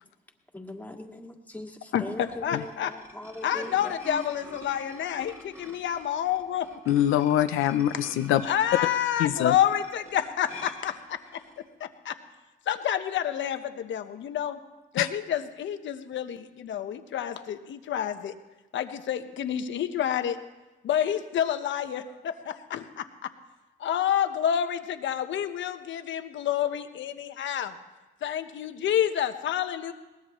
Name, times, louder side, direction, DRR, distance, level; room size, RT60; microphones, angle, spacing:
voice 1, 0.5-4.0 8.0-8.1, left 1 dB, 10° left, 1 dB, 2.1 m, -41 dB
sound 1, 2.3-11.6, left 1 dB, 15° right, 3.0 m, -47 dB
voice 2, 2.4-2.9 3.4-5.3 5.6-6.7 8.4-10.9 12.1-12.2 12.7-14.6 14.9-18.3 18.7-20.4 20.8-22.0 22.7-22.8 23.8-27.7 28.2-29.9, left 10 dB, 70° left, 8 dB, 1.2 m, -28 dB
voice 3, 6.9-8.5 9.2-9.6 15.0-15.1, left 12 dB, 85° left, 9 dB, 0.7 m, -24 dB
21.5 x 19.0 x 3.1 m, 1.1 s
cardioid pair, 90°, 20 cm